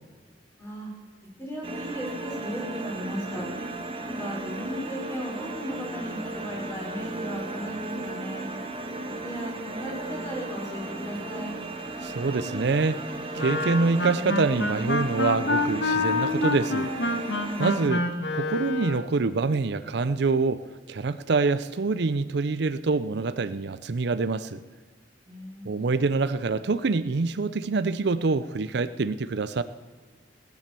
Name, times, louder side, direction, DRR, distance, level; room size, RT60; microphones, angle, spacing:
voice 1, 0.6-0.9 1.4-3.5 4.0-8.5 9.2-11.5 25.3-25.7, equal, 15° left, -3 dB, 5.3 m, -36 dB
sound 1, 1.6-17.9, right 2 dB, 30° right, 1.8 m, -36 dB
voice 2, 12.0-16.9 17.6-18.0 18.3-24.6 25.6-29.6, right 4 dB, 65° right, 13 dB, 0.5 m, -26 dB
Wind instrument woodwind instrument, 13.3-19.1, left 2 dB, 75° left, 1.5 m, -27 dB
18.5 x 10.5 x 6.8 m, 1.5 s
head